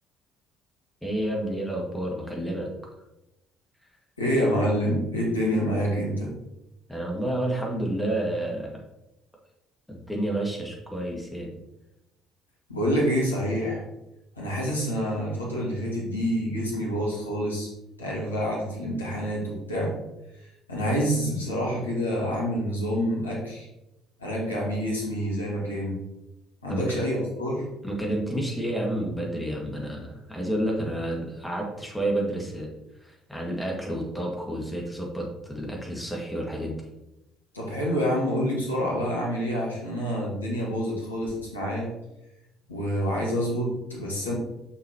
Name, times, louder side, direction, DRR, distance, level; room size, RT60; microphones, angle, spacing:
voice 1, 1.0-2.7 6.9-8.7 9.9-11.6 26.7-26.8 27.8-32.7 33.0-36.7, right 1 dB, 5° left, -1 dB, 2.0 m, -30 dB
voice 2, 4.2-6.3 12.7-13.8 14.4-17.7 18.0-19.9 20.7-23.7 24.2-26.0 26.6-27.7 37.5-41.9 42.7-44.3, equal, 80° left, -4 dB, 1.7 m, -27 dB
6.1 x 6.0 x 3.0 m, 0.92 s
figure-of-eight pair, 50°, 0 cm